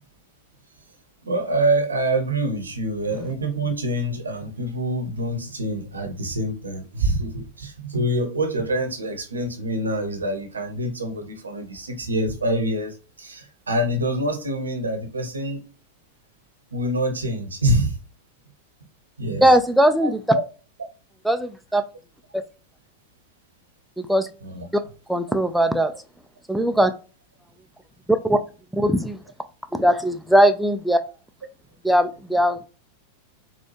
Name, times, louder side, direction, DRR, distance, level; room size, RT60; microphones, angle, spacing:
voice 1, 1.2-15.6 16.7-18.0 19.2-19.4 20.0-20.4 24.4-24.7, right 1 dB, 75° right, 0.8 m, -26 dB
voice 2, 19.4-20.2 21.3-21.8 24.0-24.3 25.1-25.9 26.5-26.9 28.1-28.4 28.7-29.2 29.7-31.0 31.8-32.7, right 1 dB, ahead, 0.3 m, -19 dB
4.0 x 2.3 x 2.9 m
figure-of-eight pair, 90°, 0 cm